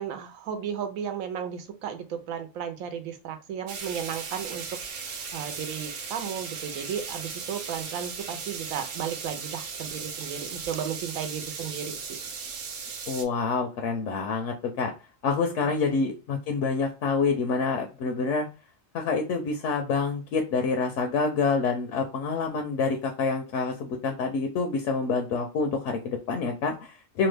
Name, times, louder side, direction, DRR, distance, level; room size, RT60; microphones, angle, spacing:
voice 1, 0.0-4.7 5.0-12.2 15.6-15.7, right 8 dB, 80° right, 8 dB, 1.0 m, -34 dB
sound 1, 3.7-13.2, right 5 dB, 60° right, 0.6 m, -37 dB
voice 2, 13.1-14.9 15.2-18.5 18.9-27.3, left 4 dB, 70° left, 4 dB, 0.8 m, -27 dB
2.9 x 2.2 x 3.2 m, 0.32 s
omnidirectional pair, 1.4 m